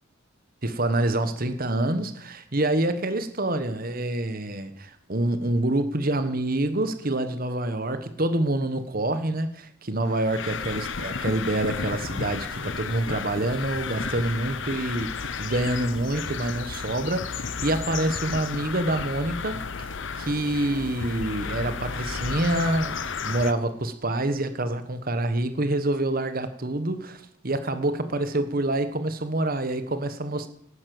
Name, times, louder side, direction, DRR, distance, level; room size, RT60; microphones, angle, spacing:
voice 1, 0.6-30.5, right 1 dB, 45° right, 10 dB, 1.3 m, -27 dB
sound 1, 10.1-23.5, left 5 dB, 60° left, 0.8 m, -33 dB
11.5 x 9.8 x 7.8 m, 0.67 s
head